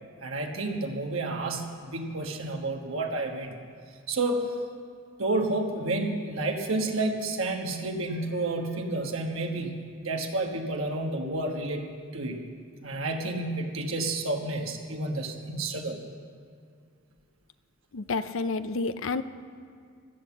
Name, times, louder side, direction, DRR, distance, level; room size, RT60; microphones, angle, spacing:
voice 1, 0.2-3.5 4.1-4.5 5.2-11.9 12.1-12.4 12.8-16.0, right 2 dB, 75° right, 2 dB, 1.3 m, -30 dB
voice 2, 17.9-19.2, left 3 dB, 70° left, 12 dB, 0.5 m, -29 dB
15.5 x 10.0 x 7.2 m, 2.1 s
head